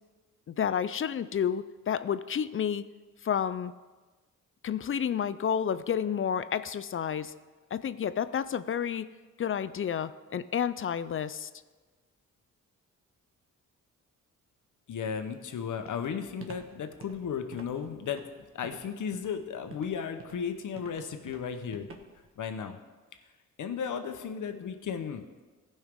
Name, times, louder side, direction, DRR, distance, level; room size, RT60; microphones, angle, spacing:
voice 1, 0.5-2.8 3.2-3.7 4.6-7.3 7.7-9.1 9.4-11.5, left 8 dB, 40° left, 14 dB, 0.4 m, -30 dB
voice 2, 14.9-18.2 18.5-21.9 22.4-22.8 23.6-25.2, left 7 dB, 65° left, 7 dB, 1.0 m, -35 dB
Walk footsteps, 15.9-22.3, right 4 dB, 40° right, 1.2 m, -49 dB
15.5 x 5.6 x 3.6 m, 1.3 s
cardioid pair, 70°, 32 cm